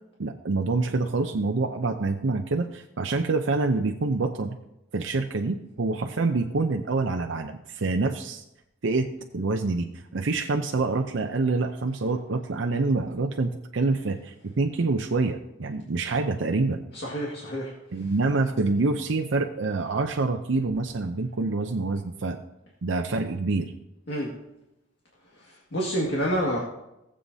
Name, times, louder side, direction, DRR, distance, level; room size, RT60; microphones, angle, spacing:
voice 1, 0.2-4.6 4.9-8.4 8.8-9.9 10.1-16.8 17.9-22.4 22.8-23.7, right 3 dB, 75° right, 4 dB, 0.6 m, -26 dB
voice 2, 16.9-17.7 18.0-18.1 24.1-24.3 25.3-26.6, equal, 60° left, -4 dB, 1.9 m, -28 dB
18.5 x 7.7 x 2.8 m, 0.89 s
head